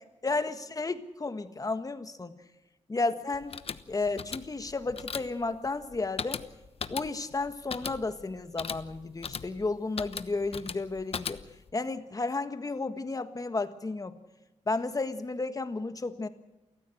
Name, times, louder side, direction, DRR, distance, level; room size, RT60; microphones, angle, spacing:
voice 1, 0.2-2.3 2.9-3.5 3.9-6.4 6.9-11.4 11.7-14.2 14.7-16.3, left 3 dB, 30° left, 9 dB, 1.5 m, -32 dB
sound 1, 3.3-11.7, left 6 dB, 55° left, 1.0 m, -39 dB
29.0 x 14.5 x 7.9 m, 1.0 s
wide cardioid pair, 100°, 12 cm